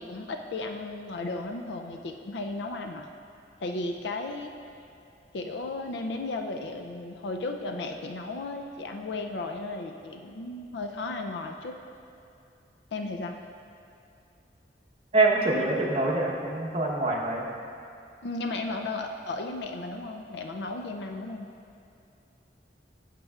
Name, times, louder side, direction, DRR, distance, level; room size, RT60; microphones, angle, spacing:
voice 1, 0.0-3.1 3.6-4.5 5.3-11.7 12.9-13.4 18.2-21.5, left 2 dB, 75° left, 4 dB, 0.4 m, -35 dB
voice 2, 15.1-17.5, right 2 dB, 35° right, -3 dB, 0.9 m, -25 dB
10.5 x 7.4 x 2.4 m, 2.7 s
head